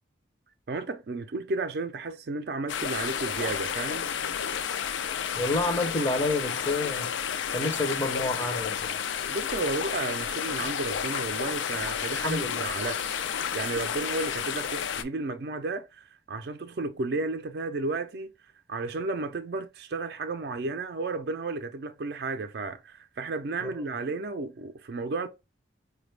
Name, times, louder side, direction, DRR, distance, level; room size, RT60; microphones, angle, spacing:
voice 1, 0.7-4.1 9.3-13.2 13.5-18.3 18.7-25.3, right 3 dB, 55° right, 0.4 m, -33 dB
sound 1, 2.7-15.0, left 8 dB, 75° left, 0.4 m, -31 dB
voice 2, 5.4-7.1 7.5-9.0 12.2-12.7 23.6-23.7, left 2 dB, 20° left, 0.5 m, -29 dB
4.9 x 2.2 x 3.2 m
head